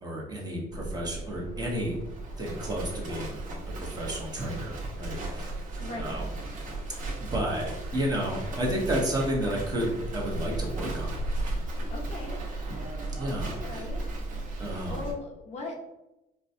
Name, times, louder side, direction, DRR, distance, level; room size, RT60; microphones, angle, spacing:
voice 1, 0.0-2.0 2.4-3.4 3.8-5.5 6.0-6.2 7.2-11.2 13.2-13.9 14.6-15.0, equal, 25° right, -3 dB, 1.2 m, -32 dB
Livestock farm animals working animals, 0.7-15.1, right 2 dB, 50° right, 1.3 m, -35 dB
voice 2, 5.8-6.2 11.9-12.4 13.5-14.0 14.9-15.8, left 2 dB, 40° left, -1 dB, 0.8 m, -38 dB
4.8 x 2.3 x 2.7 m, 0.92 s
cardioid pair, 110°, 17 cm